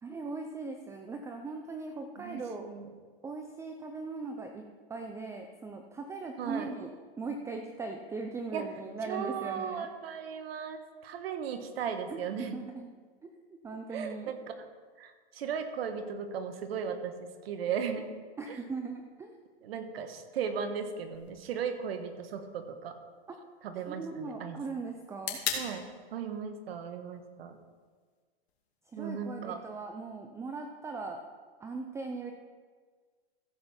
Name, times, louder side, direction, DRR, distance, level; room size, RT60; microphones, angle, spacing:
voice 1, 0.0-2.7 3.2-4.6 4.9-6.9 7.2-9.9 12.1-12.9 13.6-14.3 18.4-19.4 23.9-25.4 28.9-31.2 31.6-32.3, right 3 dB, 10° right, 4 dB, 0.5 m, -39 dB
voice 2, 2.2-2.9 6.4-6.7 8.5-8.7 9.0-12.6 13.9-14.4 15.0-18.1 18.5-18.6 19.6-23.0 23.6-24.6 25.5-25.8 26.1-27.6 29.0-29.6, right 7 dB, 70° right, 7 dB, 1.5 m, -36 dB
sound 1, 21.1-29.1, left 7 dB, 85° left, 2.4 m, -43 dB
14.5 x 7.7 x 4.3 m, 1.5 s
hypercardioid pair, 135°, 31 cm